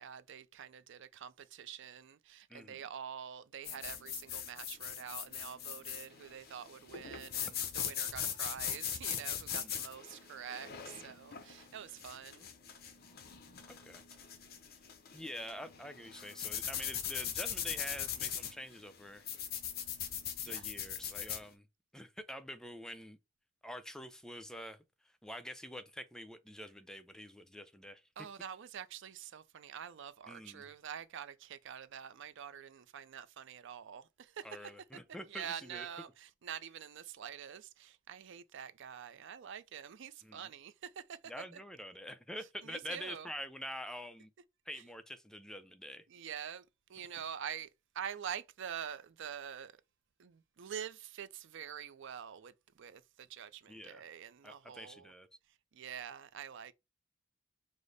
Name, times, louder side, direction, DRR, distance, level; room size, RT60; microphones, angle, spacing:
voice 1, 0.0-12.5 20.4-20.6 28.2-34.7 35.3-41.6 42.6-43.3 46.1-46.6 46.9-47.7 47.9-49.7 50.2-52.5 52.8-55.1 55.7-56.7, right 8 dB, 65° right, 0.4 m, -46 dB
voice 2, 2.5-2.8 7.4-7.5 9.5-9.8 13.7-14.0 15.1-19.3 20.4-21.7 21.9-23.2 23.6-24.8 25.2-28.0 30.3-30.7 34.4-35.9 40.2-40.5 41.3-44.3 44.7-46.1 53.7-54.0 54.4-55.3, equal, 5° left, 0.4 m, -46 dB
sound 1, 3.6-21.4, left 9 dB, 50° left, 0.7 m, -40 dB
4.9 x 2.1 x 4.0 m
head